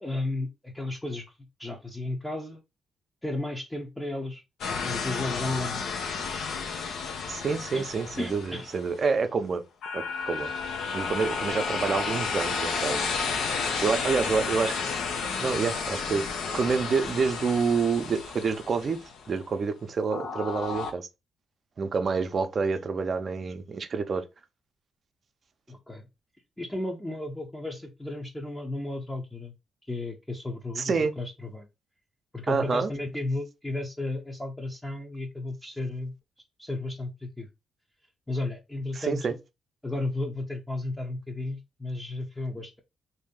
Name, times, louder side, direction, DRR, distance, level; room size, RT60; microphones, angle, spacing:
voice 1, 0.0-1.2 1.6-2.6 3.2-4.4 4.7-5.8 7.7-7.9 8.2-8.7 11.5-11.6 25.7-26.1 26.6-29.5 29.9-31.7 32.3-36.1 36.6-37.5 38.3-39.4 39.8-42.8, left 2 dB, 10° left, 0.7 m, -33 dB
sound 1, 4.6-9.0 9.8-19.5 20.1-20.9, left 5 dB, 80° left, 0.7 m, -32 dB
voice 2, 7.3-9.6 9.9-10.5 10.9-13.1 13.8-14.8 15.4-19.0 19.3-21.1 21.8-24.2 30.8-31.1 32.5-32.9 38.9-39.3, right 5 dB, 45° right, 0.6 m, -27 dB
3.2 x 2.7 x 3.7 m
cardioid pair, 85°, 0 cm